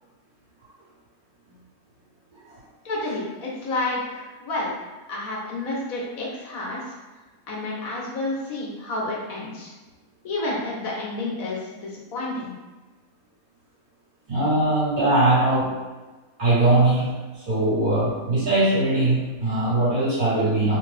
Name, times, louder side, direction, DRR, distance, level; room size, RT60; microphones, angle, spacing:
voice 1, 2.8-4.8 5.1-6.8 7.5-9.7 10.2-12.5, left 2 dB, 60° left, -4 dB, 1.4 m, -30 dB
voice 2, 14.3-15.8 16.4-17.1 17.5-20.8, right 2 dB, 65° right, -10 dB, 2.2 m, -21 dB
4.2 x 2.4 x 3.3 m, 1.2 s
omnidirectional pair, 1.7 m